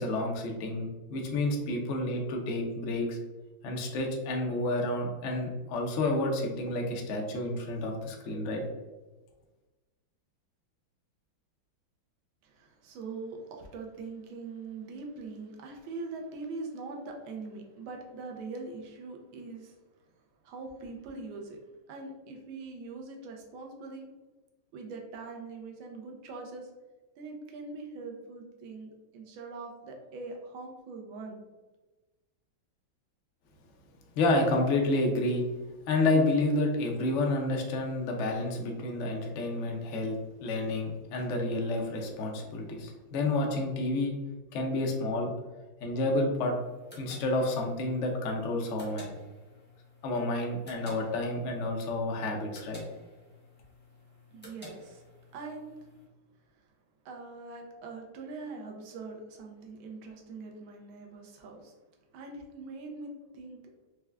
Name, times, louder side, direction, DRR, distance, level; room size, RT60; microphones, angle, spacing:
voice 1, 0.0-3.2 3.6-8.6 34.2-35.4 35.9-44.1 44.5-45.3 45.8-46.5 47.0-49.1 50.0-52.8, left 2 dB, 80° left, 1 dB, 0.6 m, -30 dB
voice 2, 12.4-19.8 20.0-20.1 20.4-21.6 21.9-24.1 24.7-26.7 27.2-31.4 54.3-55.0 55.3-55.8 56.5-56.6 57.0-61.8 62.1-63.6, right 3 dB, 90° right, 1 dB, 1.5 m, -42 dB
sound 1, 46.5-56.1, left 1 dB, 10° left, 0.5 m, -53 dB
4.7 x 2.2 x 3.4 m, 1.2 s
omnidirectional pair, 2.2 m